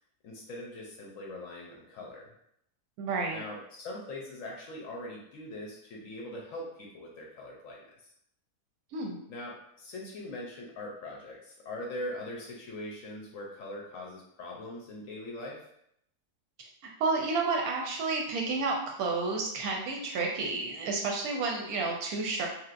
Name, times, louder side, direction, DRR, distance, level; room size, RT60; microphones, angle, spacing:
voice 1, 0.2-2.3 3.3-7.8 9.3-15.6, left 1 dB, 65° left, -1 dB, 0.9 m, -41 dB
voice 2, 3.0-3.4 8.9-9.2 17.0-22.5, right 3 dB, 70° right, 0 dB, 1.0 m, -30 dB
3.3 x 2.8 x 2.5 m, 0.73 s
omnidirectional pair, 1.8 m